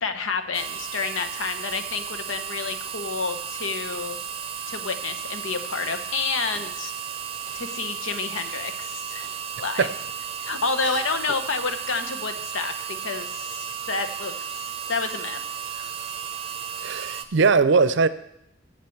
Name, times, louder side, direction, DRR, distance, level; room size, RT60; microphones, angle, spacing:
voice 1, 0.0-4.2 4.7-6.9 7.5-9.2 9.6-9.9 10.4-14.3 14.9-15.4 15.7-15.9, left 4 dB, 85° left, 1.0 m, -29 dB
sound 1, 0.5-17.2, right 8 dB, 30° right, 0.8 m, -34 dB
sound 2, 6.5-6.8 7.5-7.9 8.4-8.6 9.2-9.5 10.0-10.1 10.8-11.2, equal, 20° left, 2.7 m, -48 dB
voice 2, 16.8-18.1, right 4 dB, 65° right, 0.5 m, -19 dB
7.7 x 7.6 x 7.3 m
head